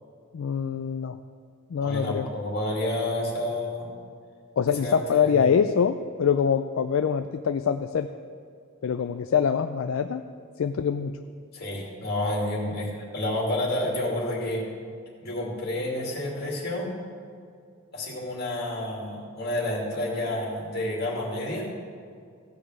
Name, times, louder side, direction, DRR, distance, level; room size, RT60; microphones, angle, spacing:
voice 1, 0.3-1.2 1.7-2.3 4.6-8.1 8.8-10.2 10.6-11.2, left 7 dB, 70° left, 8 dB, 0.4 m, -24 dB
voice 2, 1.8-3.9 4.8-5.5 11.5-14.6 15.2-16.9 17.9-21.7, left 1 dB, 45° left, -3 dB, 2.5 m, -29 dB
15.5 x 5.3 x 6.2 m, 2.2 s
head